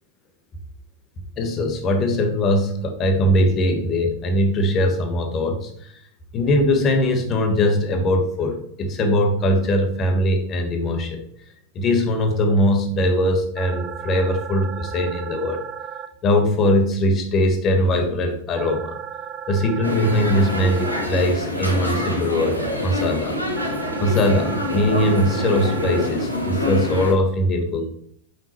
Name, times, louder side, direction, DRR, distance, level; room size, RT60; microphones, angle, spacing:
voice 1, 1.4-5.9 6.3-11.2 11.7-15.6 16.2-19.0 19.5-23.4 24.0-27.9, left 1 dB, 30° left, 5 dB, 1.2 m, -21 dB
sound 1, 13.6-16.1 18.6-21.1 23.6-26.1, right 8 dB, 30° right, 0.5 m, -35 dB
sound 2, 19.8-27.1, left 1 dB, 90° left, 1.1 m, -26 dB
5.7 x 5.6 x 3.1 m, 0.65 s
figure-of-eight pair, 90°, 0 cm